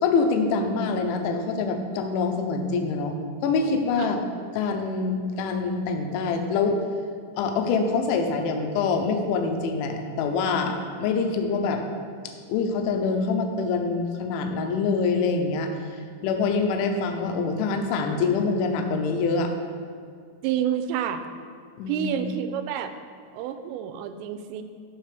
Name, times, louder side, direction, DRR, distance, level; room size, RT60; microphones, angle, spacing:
voice 1, 0.0-4.2 4.6-6.8 7.4-11.8 12.5-15.8 16.2-19.5 21.8-22.1, left 4 dB, 80° left, 4 dB, 3.0 m, -25 dB
voice 2, 20.4-21.2 21.8-22.9 23.3-24.6, right 9 dB, 90° right, 9 dB, 3.2 m, -28 dB
12.5 x 6.5 x 3.4 m, 2.1 s
omnidirectional pair, 5.7 m